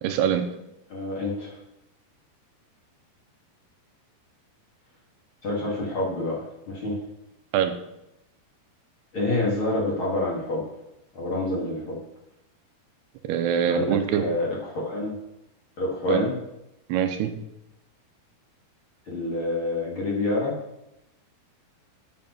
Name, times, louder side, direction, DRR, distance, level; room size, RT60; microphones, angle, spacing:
voice 1, 0.0-0.4 7.5-7.7 13.3-14.2 16.1-16.3 16.9-17.3, right 8 dB, 90° right, 8 dB, 2.8 m, -23 dB
voice 2, 0.9-1.6 5.4-7.0 9.1-10.6 11.1-12.0 13.7-15.1 15.8-16.4 19.1-20.6, left 2 dB, 40° left, -4 dB, 2.3 m, -27 dB
8.8 x 7.8 x 5.5 m, 0.87 s
omnidirectional pair, 4.7 m